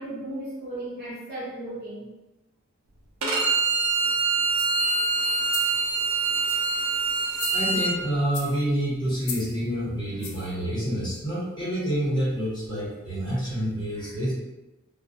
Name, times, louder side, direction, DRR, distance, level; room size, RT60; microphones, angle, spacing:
voice 1, 0.0-2.1, right 1 dB, 45° right, -7 dB, 0.9 m, -35 dB
Bowed string instrument, 3.2-7.9, right 4 dB, 85° right, 0.5 m, -24 dB
sound 1, 4.5-4.9 5.4-5.8 6.3-6.8 7.2-7.9 8.3-8.6 9.2-9.6 10.2-10.5 11.1-11.2, left 6 dB, 90° left, 0.4 m, -38 dB
voice 2, 7.5-14.3, equal, 20° left, -10 dB, 1.0 m, -28 dB
2.2 x 2.1 x 2.6 m, 1.0 s
head